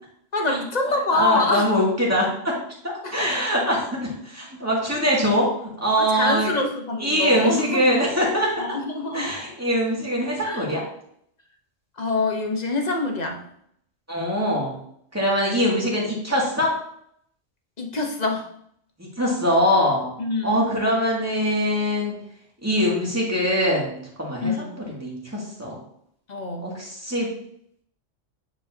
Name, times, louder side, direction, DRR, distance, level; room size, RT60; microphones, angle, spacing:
voice 1, 0.3-1.7 3.0-3.3 6.0-7.9 8.6-9.4 10.4-10.6 12.0-13.4 17.8-18.5 20.2-20.6 24.4-24.7 26.3-26.7, left 2 dB, 40° left, 3 dB, 0.9 m, -25 dB
voice 2, 1.1-2.5 3.1-6.5 7.0-8.6 9.1-10.8 14.1-14.8 15.1-16.7 19.0-20.1 20.4-22.2 22.6-25.8 26.6-27.3, equal, 10° right, -5 dB, 2.1 m, -23 dB
9.2 x 5.0 x 2.7 m, 0.69 s
omnidirectional pair, 1.3 m